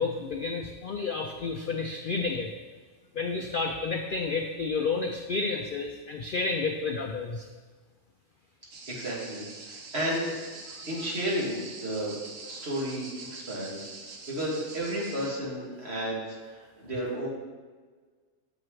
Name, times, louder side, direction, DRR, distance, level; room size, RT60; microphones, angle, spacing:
voice 1, 0.0-2.5 3.1-7.5, left 4 dB, 60° left, 4 dB, 0.5 m, -30 dB
sound 1, 8.7-15.3, right 3 dB, 70° right, 1.2 m, -44 dB
voice 2, 8.9-10.3 10.9-12.1 12.5-13.9 14.3-16.2 16.5-17.3, right 1 dB, 50° right, -5 dB, 2.3 m, -32 dB
7.7 x 7.6 x 3.2 m, 1.5 s
omnidirectional pair, 1.4 m